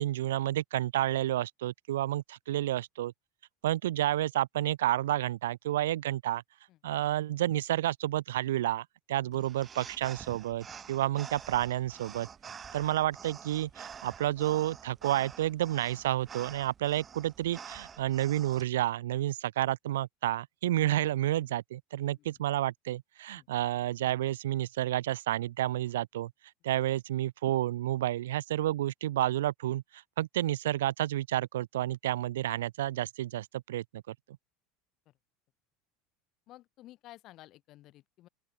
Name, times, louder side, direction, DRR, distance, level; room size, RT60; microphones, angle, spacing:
voice 1, 0.0-3.1 3.6-6.4 6.8-12.3 12.7-26.3 26.6-34.1, right 13 dB, 75° right, 0.3 m, -30 dB
sound 1, 9.3-18.6, right 7 dB, 30° right, 6.3 m, -48 dB
voice 2, 36.5-38.3, left 16 dB, 50° left, 4.9 m, -54 dB
open air
hypercardioid pair, 80°, 0 cm